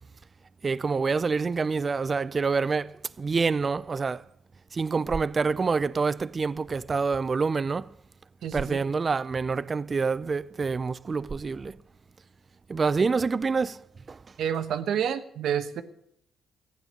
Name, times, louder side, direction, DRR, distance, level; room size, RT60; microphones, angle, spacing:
voice 1, 0.6-4.2 4.7-7.9 8.5-11.8 12.7-14.2, right 4 dB, 35° right, 0.5 m, -27 dB
voice 2, 8.4-8.8 14.4-15.8, right 8 dB, 70° right, 1.2 m, -29 dB
15.5 x 9.5 x 6.6 m
cardioid pair, 90°, 0 cm